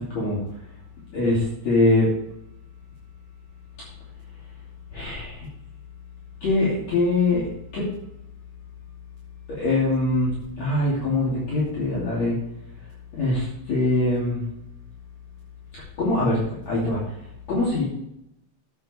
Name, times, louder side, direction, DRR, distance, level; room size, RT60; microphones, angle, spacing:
voice 1, 0.1-0.4 1.1-2.1 4.9-5.5 6.4-7.9 9.5-12.4 13.2-14.4 16.0-17.1 17.5-17.8, left 2 dB, 45° left, -7 dB, 3.7 m, -23 dB
11.0 x 8.8 x 3.4 m, 0.79 s
omnidirectional pair, 4.8 m